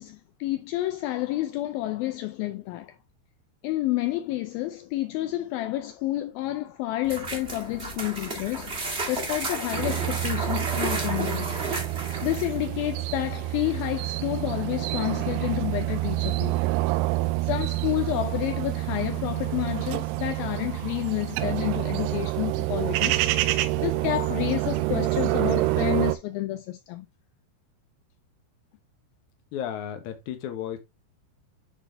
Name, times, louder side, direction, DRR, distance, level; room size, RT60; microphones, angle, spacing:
voice 1, 0.0-3.0 3.6-11.6 12.2-16.6 17.4-23.2 23.8-27.1, left 16 dB, 85° left, 2.1 m, -30 dB
sound 1, 7.0-12.6, right 3 dB, 35° right, 1.0 m, -32 dB
sound 2, 9.7-26.2, right 18 dB, 80° right, 2.6 m, -27 dB
voice 2, 29.5-30.8, left 10 dB, 70° left, 1.9 m, -33 dB
10.0 x 4.1 x 3.3 m
omnidirectional pair, 4.8 m